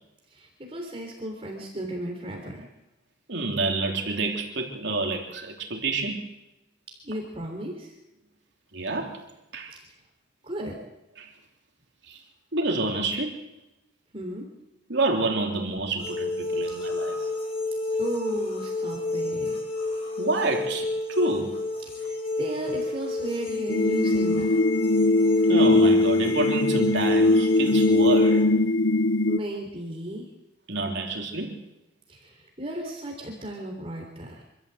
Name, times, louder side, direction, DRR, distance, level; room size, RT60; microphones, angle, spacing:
voice 1, 0.3-2.7 7.0-7.9 10.4-10.8 14.1-14.5 16.7-16.8 18.0-19.6 21.9-24.5 29.3-30.2 32.1-34.4, right 1 dB, 30° right, 2 dB, 3.5 m, -35 dB
voice 2, 3.3-6.3 8.7-9.2 9.5-9.7 11.2-11.3 12.1-12.2 12.5-13.4 14.9-17.2 20.2-21.6 25.5-28.5 30.7-31.6, right 2 dB, 65° right, 1 dB, 3.4 m, -28 dB
sound 1, 16.0-28.4, left 2 dB, 30° left, 6.3 m, -30 dB
sound 2, 23.7-29.4, left 2 dB, 75° left, 0.7 m, -21 dB
26.0 x 13.5 x 8.1 m, 0.95 s
head